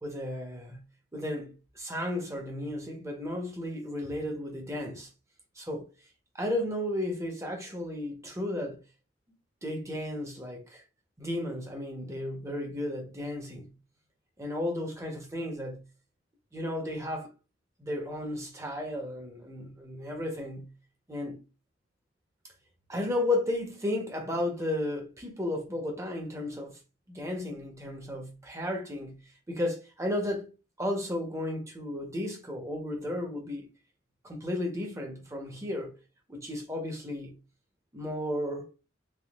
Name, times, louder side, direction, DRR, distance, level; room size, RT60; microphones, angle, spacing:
voice 1, 0.0-0.8 1.1-5.1 5.5-5.9 6.3-8.8 9.6-10.8 11.2-13.7 14.4-15.8 16.5-17.3 17.8-20.7 21.1-21.4 22.9-26.8 27.1-33.7 34.2-35.9 36.3-37.4 37.9-38.7, left 1 dB, 15° right, 0.9 m, -34 dB
3.6 x 3.4 x 2.4 m
head